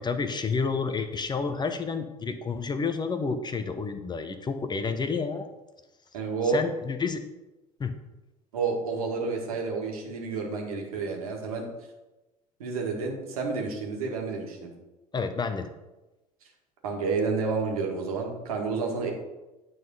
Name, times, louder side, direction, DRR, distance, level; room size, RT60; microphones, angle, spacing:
voice 1, 0.0-5.5 6.5-7.2 7.8-7.9 15.1-15.7, left 5 dB, 20° left, 8 dB, 0.8 m, -30 dB
voice 2, 6.1-6.6 8.5-11.7 12.6-14.7 16.8-19.1, right 4 dB, 75° right, 1 dB, 1.8 m, -30 dB
9.1 x 4.1 x 5.4 m, 1.0 s
figure-of-eight pair, 65°, 19 cm